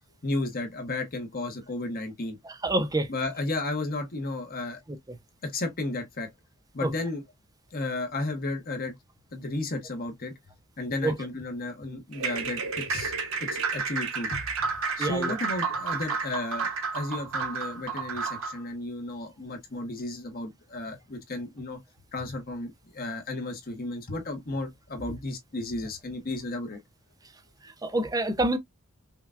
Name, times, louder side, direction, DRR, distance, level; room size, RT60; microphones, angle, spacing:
voice 1, 0.2-2.4 3.1-4.8 5.4-6.3 6.7-7.2 7.7-8.9 9.3-10.4 10.8-14.7 15.0-21.8 22.1-26.8, left 2 dB, 45° left, 0.9 m, -33 dB
voice 2, 2.4-3.1 6.8-6.9 11.0-11.1 15.0-15.3 27.8-28.6, right 2 dB, 15° right, 0.6 m, -26 dB
sound 1, 12.1-18.6, right 5 dB, 65° right, 1.0 m, -31 dB
5.6 x 2.2 x 2.4 m
head